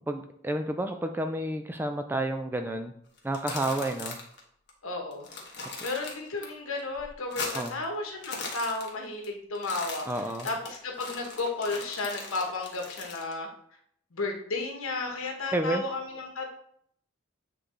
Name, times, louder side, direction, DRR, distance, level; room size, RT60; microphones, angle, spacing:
voice 1, 0.1-2.9 3.2-4.2 7.5-7.8 10.1-10.5 15.5-15.8, right 1 dB, 10° right, 6 dB, 0.3 m, -30 dB
sound 1, 3.2-4.4 4.7-4.8 5.1-6.5 6.8-7.8 8.1-9.3 9.6-13.3, left 3 dB, 50° left, 1.1 m, -39 dB
voice 2, 4.8-5.3 5.8-10.0 10.4-13.5 14.1-16.5, left 3 dB, 80° left, 2 dB, 1.2 m, -33 dB
8.0 x 3.2 x 3.8 m, 0.67 s
head